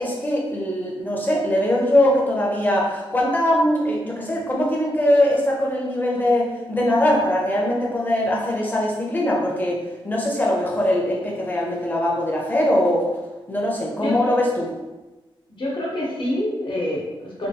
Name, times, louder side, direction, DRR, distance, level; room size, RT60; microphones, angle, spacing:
voice 1, 0.0-13.1 13.5-14.7, left 1 dB, 20° left, -2 dB, 0.7 m, -21 dB
voice 2, 14.0-14.3 15.5-17.5, left 1 dB, 60° left, -4 dB, 1.0 m, -27 dB
3.4 x 2.3 x 2.8 m, 1.1 s
wide cardioid pair, 130°, 9 cm